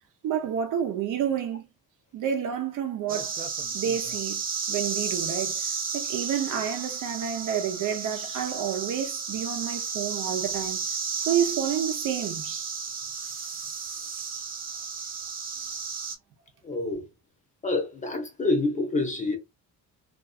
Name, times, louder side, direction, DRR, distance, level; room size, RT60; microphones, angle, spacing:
voice 1, 0.2-1.6 2.1-3.3 3.7-4.4 4.7-5.6 5.9-10.8 11.2-12.8, right 9 dB, 65° right, 0.8 m, -29 dB
sound 1, 3.1-16.2, right 5 dB, 25° right, 0.4 m, -33 dB
voice 2, 16.6-17.1 17.6-19.4, left 2 dB, 20° left, 0.7 m, -27 dB
2.6 x 2.3 x 2.4 m
cardioid pair, 175°, 34 cm